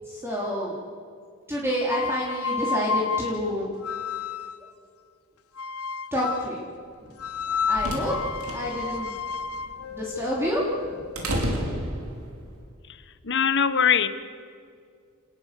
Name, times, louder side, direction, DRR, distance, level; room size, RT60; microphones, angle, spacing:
voice 1, 0.1-0.8 1.5-3.7 6.1-6.7 7.0-7.1 7.5-8.1 8.5-9.1 9.9-10.9, equal, 10° right, 3.5 m, -28 dB
sound 1, 1.8-4.7 5.6-6.6 7.2-11.2, left 5 dB, 80° left, 0.8 m, -31 dB
sound 2, 7.2-12.5, right 1 dB, 80° right, 4.9 m, -32 dB
voice 2, 13.2-14.1, left 7 dB, 55° left, 1.3 m, -21 dB
28.5 x 20.5 x 6.8 m
head